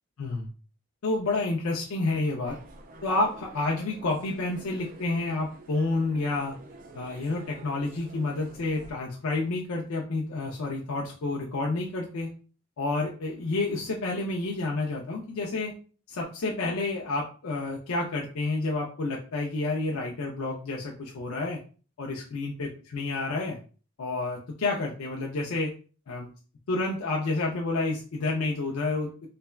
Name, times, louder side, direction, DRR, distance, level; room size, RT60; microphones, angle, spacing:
voice 1, 1.0-2.5 3.0-6.5 6.9-12.3 12.8-15.7 16.1-21.6 22.0-23.6 24.0-25.7 26.1-26.3 26.7-29.3, left 2 dB, 85° left, -1 dB, 0.5 m, -29 dB
sound 1, 2.5-8.9, right 2 dB, 40° right, 0.3 m, -49 dB
3.3 x 2.2 x 2.2 m, 0.38 s
head